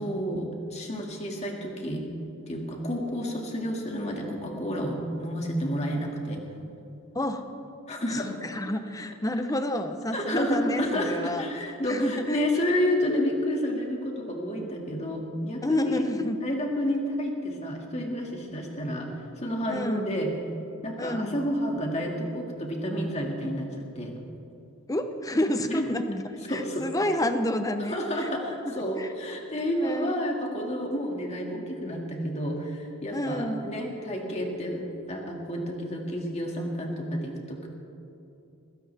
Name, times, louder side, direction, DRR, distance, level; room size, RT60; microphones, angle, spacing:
voice 1, 0.0-2.0 2.5-6.4 7.9-8.3 10.1-16.0 16.4-19.1 19.4-20.3 20.8-23.7 24.0-24.1 25.7-26.0 26.5-26.8 27.9-37.7, equal, 30° left, 0 dB, 2.2 m, -30 dB
voice 2, 7.1-7.5 8.1-11.5 11.8-12.4 15.6-16.4 19.7-20.1 21.0-21.4 24.9-28.3 28.9-29.1 29.8-30.2 33.1-33.7, left 1 dB, 15° left, 8 dB, 0.8 m, -29 dB
20.5 x 16.5 x 3.5 m, 2.8 s
head